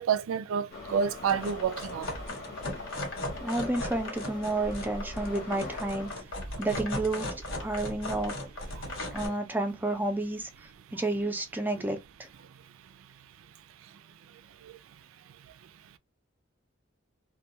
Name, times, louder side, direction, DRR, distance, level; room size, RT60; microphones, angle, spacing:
voice 1, 0.0-2.1 8.7-9.0, right 7 dB, 80° right, 0.3 m, -29 dB
Subway metro underground, 0.7-6.2, left 3 dB, 50° left, 0.8 m, -43 dB
sound 1, 1.3-9.3, left 1 dB, 65° left, 1.2 m, -37 dB
voice 2, 3.4-6.1 6.6-8.3 9.1-10.5 10.9-12.0, right 2 dB, 10° right, 0.4 m, -30 dB
2.3 x 2.2 x 2.7 m
head